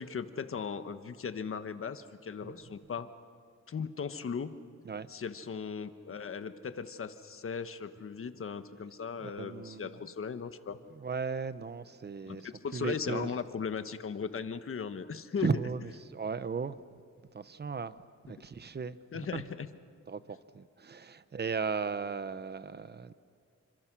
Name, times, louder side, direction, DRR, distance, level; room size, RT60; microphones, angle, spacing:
voice 1, 0.0-3.1 3.7-4.5 5.1-10.8 12.2-15.5 19.1-19.7, left 6 dB, 45° left, 1.3 m, -37 dB
voice 2, 9.2-10.0 10.9-13.3 15.4-16.8 17.3-17.9 18.3-19.0 19.3-19.4 20.1-23.1, right 5 dB, 35° right, 0.9 m, -36 dB
28.5 x 25.5 x 6.2 m
cardioid pair, 105°, 29 cm